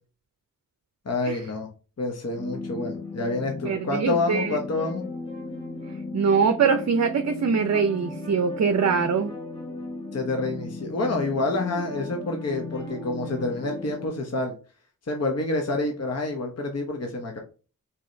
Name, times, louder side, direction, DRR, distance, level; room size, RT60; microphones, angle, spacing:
voice 1, 1.0-1.7 2.0-5.0 10.1-14.5 15.1-17.4, left 2 dB, 45° left, 0.9 m, -28 dB
sound 1, 2.3-14.1, left 2 dB, 15° left, 1.5 m, -36 dB
voice 2, 3.6-4.6 6.1-9.3, right 5 dB, 50° right, 0.5 m, -23 dB
4.7 x 4.2 x 2.6 m
wide cardioid pair, 100°, 35 cm